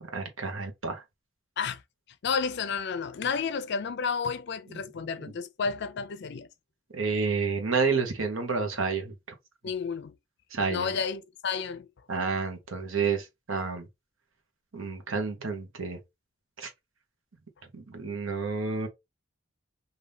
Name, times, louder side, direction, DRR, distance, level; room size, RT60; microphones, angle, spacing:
voice 1, 0.1-1.0 6.9-9.1 10.5-10.9 12.1-13.9 14.7-16.0 16.6-16.7 17.7-18.9, right 4 dB, 90° right, 1.0 m, -30 dB
voice 2, 2.2-6.5 9.6-10.1 10.7-11.9, left 5 dB, 60° left, 0.4 m, -31 dB
2.7 x 2.6 x 3.3 m
head